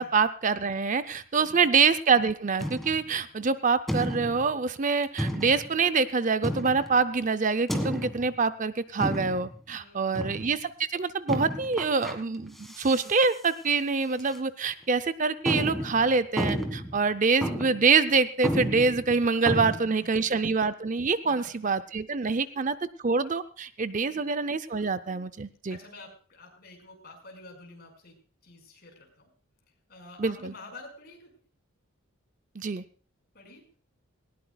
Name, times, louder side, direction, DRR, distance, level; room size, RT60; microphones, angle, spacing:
voice 1, 0.0-22.8 23.0-25.8 30.2-30.5 32.6-32.8, right 4 dB, 35° right, 12 dB, 0.5 m, -25 dB
voice 2, 1.4-1.7 9.8-10.3 17.0-17.1 20.0-20.3 21.2-21.7 22.2-22.5 23.9-24.2 25.7-28.1 28.4-29.3 29.9-31.3 33.3-33.6, left 2 dB, 45° left, 2 dB, 5.2 m, -49 dB
sound 1, 2.6-3.1 3.9-4.5 5.2-5.7 6.4-7.0 7.7-8.3 9.0-9.6 10.1-10.5 11.3-12.2 12.6-13.1 13.4-13.5 14.2-14.4 14.8-14.9 15.4-17.0 17.4-17.9 18.1-18.2 18.4-19.8, equal, ahead, 1.7 m, -32 dB
19.0 x 18.0 x 2.3 m, 0.41 s
head